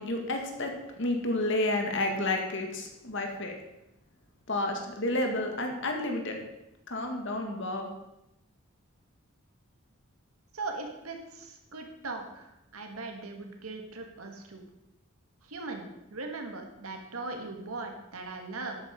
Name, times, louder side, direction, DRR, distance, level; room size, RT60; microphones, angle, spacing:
voice 1, 0.0-3.5 4.5-6.4 6.9-7.9, left 2 dB, 55° left, 3 dB, 2.0 m, -30 dB
voice 2, 10.5-14.6 15.5-18.8, right 3 dB, 90° right, 4 dB, 2.0 m, -39 dB
12.0 x 9.3 x 5.3 m, 0.89 s
head